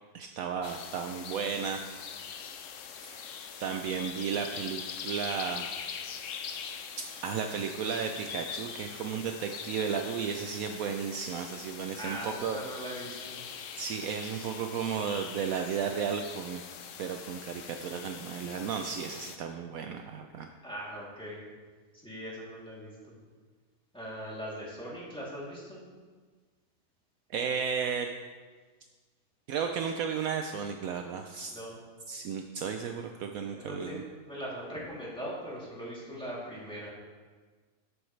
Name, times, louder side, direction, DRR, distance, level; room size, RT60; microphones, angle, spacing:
voice 1, 0.1-1.8 3.0-3.3 3.6-5.6 7.2-12.6 13.8-16.6 17.0-20.5 27.3-28.1 29.5-31.6 32.1-34.0, right 6 dB, 70° right, 5 dB, 1.0 m, -34 dB
sound 1, 0.6-19.4, left 7 dB, 60° left, 0.9 m, -43 dB
voice 2, 12.0-13.4 20.6-21.4 22.0-23.2 23.9-25.8 31.5-31.7 33.5-36.9, equal, 5° left, -7 dB, 2.8 m, -40 dB
13.5 x 7.9 x 3.2 m, 1.4 s
omnidirectional pair, 1.6 m